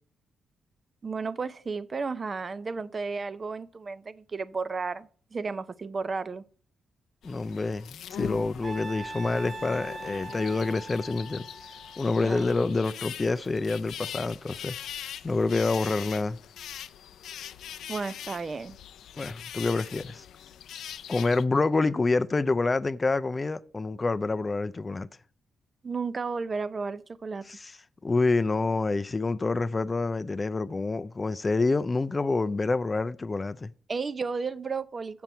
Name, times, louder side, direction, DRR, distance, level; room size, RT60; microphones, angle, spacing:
voice 1, 1.0-6.4 12.2-12.5 17.9-18.8 25.8-27.5 33.9-35.2, right 4 dB, 35° right, 0.5 m, -33 dB
sound 1, 7.2-21.4, left 10 dB, 85° left, 0.4 m, -42 dB
voice 2, 7.2-11.5 12.0-14.8 15.2-16.4 19.2-20.2 21.1-25.1 27.5-27.7 28.0-33.7, left 3 dB, 25° left, 0.4 m, -27 dB
Trumpet, 8.6-12.8, right 2 dB, 15° right, 1.1 m, -41 dB
7.6 x 6.9 x 4.4 m
cardioid pair, 130°, 0 cm